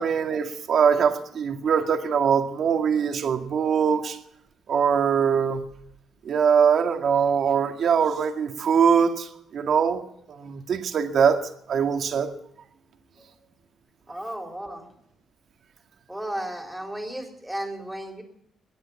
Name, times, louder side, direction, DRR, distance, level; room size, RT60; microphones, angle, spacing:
voice 1, 0.0-4.2 4.7-5.6 6.3-9.3 9.5-10.0 10.3-11.4 11.7-12.3, right 7 dB, 60° right, 5 dB, 1.9 m, -22 dB
voice 2, 14.1-14.8 16.1-18.2, right 1 dB, 5° right, 2 dB, 3.8 m, -34 dB
21.0 x 9.4 x 7.2 m, 0.76 s
cardioid pair, 90°, 0 cm